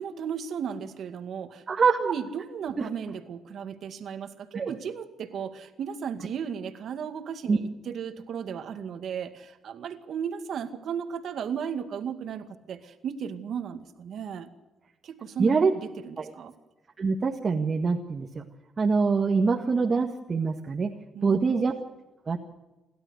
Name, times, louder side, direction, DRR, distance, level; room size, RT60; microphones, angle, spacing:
voice 1, 0.0-1.6 2.0-14.5 15.0-15.5 16.0-16.5 21.2-21.5, right 7 dB, 65° right, 8 dB, 2.1 m, -35 dB
voice 2, 1.7-2.1 2.8-2.9 4.5-4.7 7.5-7.6 15.4-15.7 16.2-16.3 17.0-18.4 18.8-20.9 21.2-21.7 22.3-22.5, right 4 dB, 40° right, 2 dB, 1.8 m, -24 dB
29.0 x 12.5 x 8.1 m, 1.1 s
cardioid pair, 90°, 0 cm